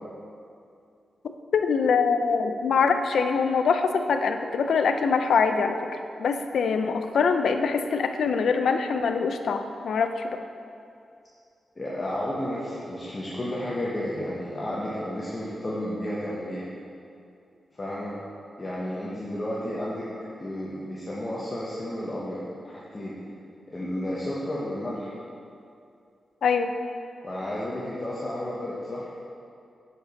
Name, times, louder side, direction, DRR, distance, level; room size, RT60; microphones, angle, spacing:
voice 1, 1.5-5.8 6.2-10.4 26.4-26.7, left 5 dB, 80° left, 7 dB, 0.4 m, -24 dB
voice 2, 11.8-16.7 17.7-18.1 18.6-20.1 20.4-23.2 23.7-25.1 27.2-29.1, left 1 dB, 25° left, -7 dB, 0.7 m, -32 dB
6.6 x 5.2 x 4.0 m, 2.5 s
wide cardioid pair, 150°, 0 cm